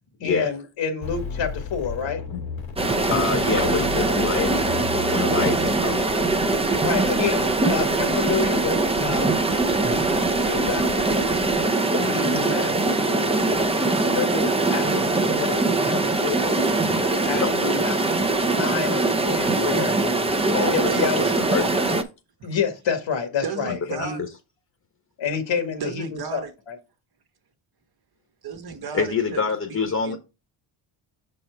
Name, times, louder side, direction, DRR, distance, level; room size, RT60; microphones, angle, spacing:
voice 1, 0.2-2.2 6.8-9.4 9.8-11.5 12.0-13.5 13.9-16.8 17.2-18.0 18.5-19.9 20.7-21.2 22.4-24.2 25.2-26.8, left 6 dB, 65° left, 1.7 m, -29 dB
sound 1, 1.0-11.6, left 6 dB, 85° left, 2.4 m, -35 dB
sound 2, 2.8-22.0, right 2 dB, 10° right, 0.7 m, -22 dB
voice 2, 3.1-4.5 5.1-6.0 11.9-12.2 16.8-17.1 17.4-17.7 20.5-21.1 21.4-21.9 23.7-24.1 28.9-30.2, left 5 dB, 30° left, 1.2 m, -26 dB
voice 3, 20.9-21.4 22.4-22.6 23.4-24.2 25.8-26.5 28.4-29.4 29.9-30.2, right 6 dB, 50° right, 1.3 m, -34 dB
6.2 x 4.3 x 4.5 m
cardioid pair, 105°, 48 cm